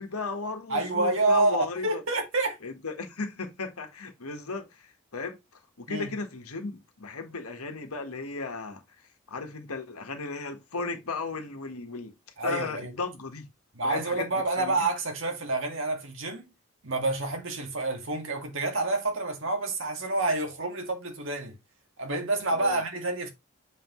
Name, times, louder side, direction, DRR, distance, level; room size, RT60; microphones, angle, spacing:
voice 1, 0.0-2.0 2.6-4.8 5.1-5.4 5.8-8.8 9.3-12.1 12.4-13.4 13.8-14.3 14.6-14.8 22.5-22.8, left 3 dB, 90° left, 1.4 m, -35 dB
voice 2, 0.7-2.6 5.9-6.1 12.4-12.9 13.7-16.5 16.8-21.5 22.0-23.3, right 2 dB, 60° right, 1.9 m, -28 dB
6.7 x 5.7 x 3.1 m
head